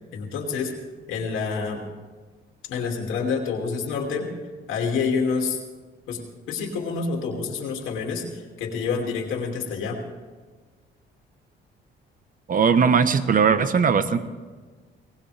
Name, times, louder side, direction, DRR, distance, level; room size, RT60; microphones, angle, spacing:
voice 1, 0.1-0.8 1.1-1.8 2.7-4.3 4.7-5.6 6.1-6.2 6.5-10.0, left 5 dB, 90° left, 1 dB, 2.6 m, -27 dB
voice 2, 12.5-14.2, right 6 dB, 45° right, 11 dB, 1.1 m, -19 dB
20.5 x 18.5 x 3.4 m, 1.4 s
cardioid pair, 90°, 20 cm